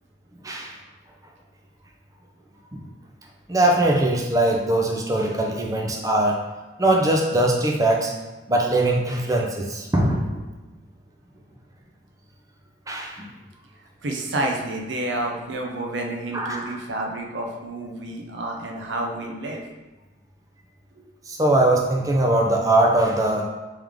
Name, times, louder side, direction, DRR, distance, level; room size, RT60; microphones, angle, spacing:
voice 1, 3.5-6.3 6.8-8.1 8.5-10.4 12.9-13.2 16.3-16.7 21.3-23.5, right 1 dB, 20° right, 0 dB, 0.5 m, -21 dB
voice 2, 14.0-19.6 20.9-21.0, right 1 dB, 75° right, 1 dB, 0.6 m, -29 dB
3.6 x 3.2 x 3.5 m, 1.1 s
head